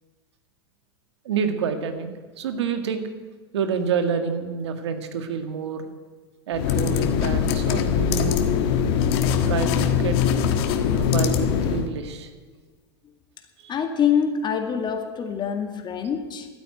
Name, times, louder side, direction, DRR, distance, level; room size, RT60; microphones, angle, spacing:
voice 1, 1.3-3.1 3.5-5.9 6.5-8.5 9.2-10.2 10.9-12.3 13.6-13.7, right 6 dB, 80° right, 8 dB, 1.8 m, -28 dB
sound 1, 6.5-11.9, left 8 dB, 65° left, 1.5 m, -22 dB
voice 2, 13.7-16.5, left 7 dB, 30° left, 5 dB, 2.0 m, -25 dB
12.5 x 9.3 x 9.7 m, 1.4 s
hypercardioid pair, 100°, 14 cm